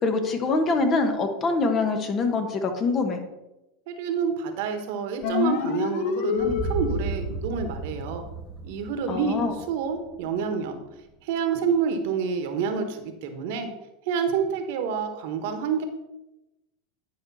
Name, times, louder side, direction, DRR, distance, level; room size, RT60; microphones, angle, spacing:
voice 1, 0.0-3.2 9.1-9.5, left 3 dB, 35° left, 6 dB, 1.3 m, -24 dB
voice 2, 3.9-8.2 8.6-10.8 11.2-13.7 14.1-15.8, right 6 dB, 70° right, 7 dB, 1.2 m, -28 dB
sound 1, 5.2-7.2, left 8 dB, 65° left, 0.8 m, -27 dB
sound 2, 6.4-10.4, right 2 dB, 5° left, 2.0 m, -33 dB
10.5 x 5.0 x 4.1 m, 0.97 s
hypercardioid pair, 105°, 0 cm